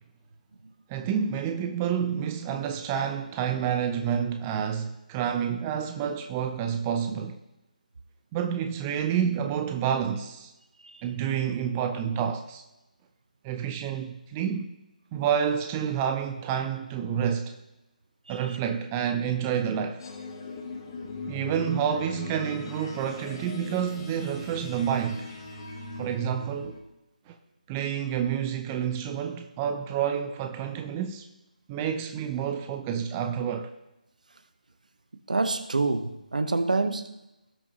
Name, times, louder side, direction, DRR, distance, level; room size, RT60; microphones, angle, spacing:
voice 1, 0.9-7.4 8.3-10.5 11.0-12.6 13.4-14.7 15.1-17.6 18.3-20.1 21.3-25.3 26.0-26.8 27.3-27.4 27.7-31.3 31.7-33.7, right 8 dB, 15° right, 0.4 m, -29 dB
voice 2, 18.3-18.6 35.3-37.1, right 3 dB, 60° right, 0.8 m, -27 dB
sound 1, 20.0-26.8, left 1 dB, 35° left, 1.5 m, -39 dB
18.0 x 6.0 x 2.9 m
figure-of-eight pair, 150°, 5 cm